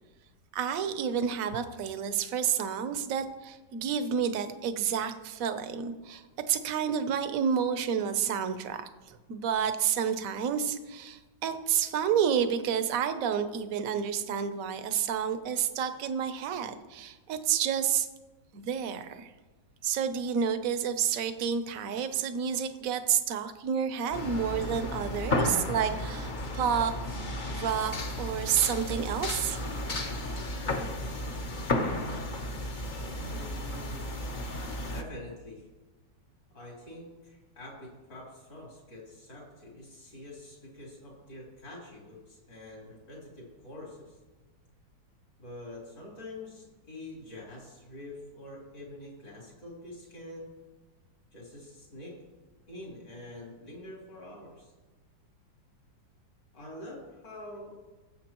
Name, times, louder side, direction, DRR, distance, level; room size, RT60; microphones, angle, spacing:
voice 1, 0.5-18.1 18.5-19.3 19.8-27.0 27.5-29.6, right 8 dB, 60° right, 9 dB, 1.0 m, -30 dB
sound 1, 24.1-35.0, left 1 dB, 40° left, 0.7 m, -33 dB
voice 2, 33.2-34.2 34.9-35.7 36.5-44.2 45.4-50.5 51.3-52.2 52.7-54.7 56.5-57.8, left 1 dB, 70° left, -4 dB, 4.3 m, -46 dB
19.5 x 7.7 x 3.0 m, 1.2 s
omnidirectional pair, 2.0 m